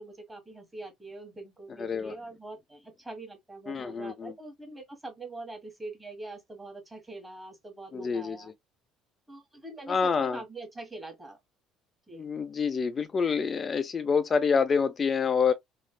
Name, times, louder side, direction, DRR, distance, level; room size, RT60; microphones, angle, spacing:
voice 1, 0.0-8.5 9.3-11.4 12.1-12.3, right 2 dB, 15° right, 1.5 m, -43 dB
voice 2, 1.8-2.1 3.7-4.3 7.9-8.4 9.9-10.4 12.1-15.5, left 5 dB, 35° left, 0.3 m, -27 dB
3.2 x 2.3 x 2.2 m
hypercardioid pair, 70°, 0 cm